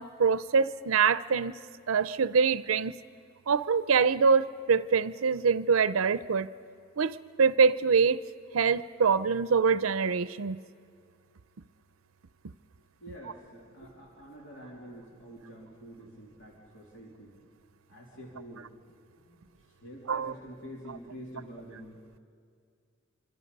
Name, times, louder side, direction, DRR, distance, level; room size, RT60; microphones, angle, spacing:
voice 1, 0.0-1.5 1.9-2.9 3.5-6.5 7.0-8.2 8.5-10.6 20.1-20.3, right 5 dB, 85° right, 15 dB, 0.5 m, -24 dB
voice 2, 13.0-17.4 17.9-18.7 19.2-22.0, equal, 65° left, -3 dB, 3.1 m, -47 dB
26.0 x 24.5 x 5.4 m, 2.3 s
head